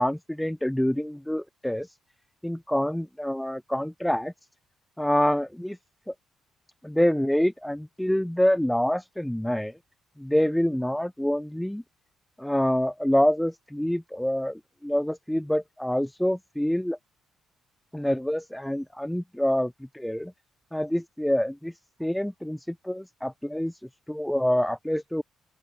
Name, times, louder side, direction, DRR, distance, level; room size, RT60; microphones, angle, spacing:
voice 1, 0.0-1.9 2.4-4.3 5.0-5.8 6.1-6.2 6.8-9.8 10.2-11.8 12.4-17.0 17.9-20.3 20.7-21.7 22.0-23.8 24.1-25.2, equal, 5° left, 5.3 m, -26 dB
open air
hypercardioid pair, 50°, 0 cm